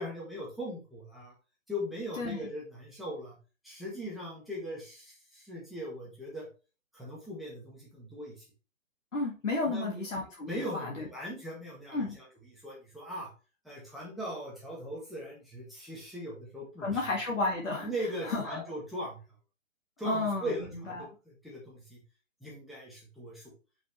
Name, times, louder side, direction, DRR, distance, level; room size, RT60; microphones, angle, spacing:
voice 1, 0.0-1.3 1.7-3.4 3.6-6.5 6.9-8.3 9.7-10.0 10.5-12.2 12.6-13.3 13.6-16.9 17.8-19.2 20.0-22.0 22.4-23.4, equal, ahead, -6 dB, 1.6 m, -39 dB
voice 2, 2.2-2.5 9.1-11.1 11.9-12.2 16.8-17.9 18.2-18.6 20.0-21.1, left 3 dB, 65° left, -1 dB, 2.2 m, -32 dB
6.1 x 5.1 x 3.2 m, 0.32 s
figure-of-eight pair, 140°, 40 cm